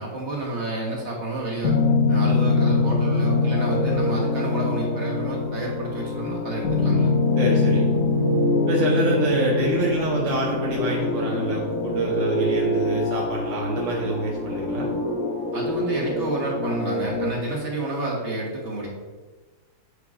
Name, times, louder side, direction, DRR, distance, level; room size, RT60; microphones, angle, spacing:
voice 1, 0.0-1.8 2.1-7.1 15.5-18.9, right 1 dB, 35° right, -3 dB, 1.5 m, -30 dB
sound 1, 1.6-17.3, left 3 dB, 60° left, 0.8 m, -24 dB
voice 2, 7.4-7.8 8.7-14.9, right 2 dB, 55° right, -3 dB, 0.8 m, -26 dB
8.2 x 2.9 x 4.8 m, 1.3 s
omnidirectional pair, 2.3 m